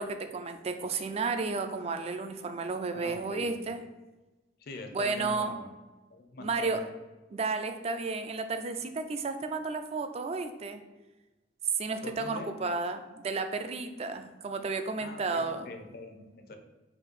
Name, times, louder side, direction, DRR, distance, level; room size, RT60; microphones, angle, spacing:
voice 1, 0.0-3.8 4.9-5.6 6.4-6.8 7.3-10.8 11.7-15.7, right 4 dB, 35° right, 8 dB, 0.4 m, -32 dB
voice 2, 2.9-3.7 4.6-5.7 6.1-6.9 12.0-12.6 15.0-16.6, left 2 dB, 55° left, 5 dB, 0.6 m, -43 dB
4.4 x 2.8 x 4.0 m, 1.1 s
head